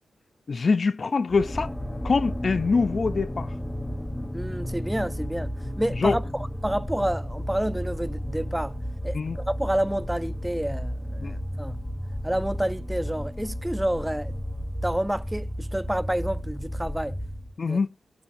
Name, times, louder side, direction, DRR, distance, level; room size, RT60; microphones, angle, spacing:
voice 1, 0.5-1.7 2.0-3.5 5.9-6.2 9.1-9.4 11.2-11.4 17.6-17.9, left 4 dB, 50° left, 0.5 m, -24 dB
sound 1, 1.3-17.6, equal, 10° left, 1.0 m, -33 dB
voice 2, 4.3-8.8 9.0-11.8 12.2-14.3 14.8-17.2 17.7-17.8, right 1 dB, 10° right, 0.6 m, -29 dB
22.0 x 7.7 x 2.7 m
cardioid pair, 85°, 0 cm